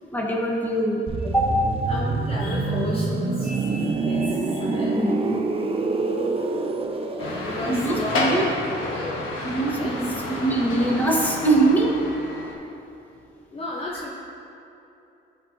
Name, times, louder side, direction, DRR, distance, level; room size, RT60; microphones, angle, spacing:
voice 1, 0.1-1.6 4.7-5.4 7.7-8.4 9.4-12.0, right 2 dB, 10° left, -3 dB, 1.3 m, -23 dB
sound 1, 1.1-10.7 11.0-11.2, right 3 dB, 30° right, 0.6 m, -27 dB
voice 2, 1.9-4.9 5.9-6.0 7.2-8.4 8.8-9.4 9.7-9.9 13.5-14.1, left 2 dB, 30° left, -4 dB, 0.7 m, -33 dB
sound 2, 7.2-12.5, left 2 dB, 80° left, 1.2 m, -30 dB
12.5 x 4.5 x 2.6 m, 2.8 s
cardioid pair, 90°, 20 cm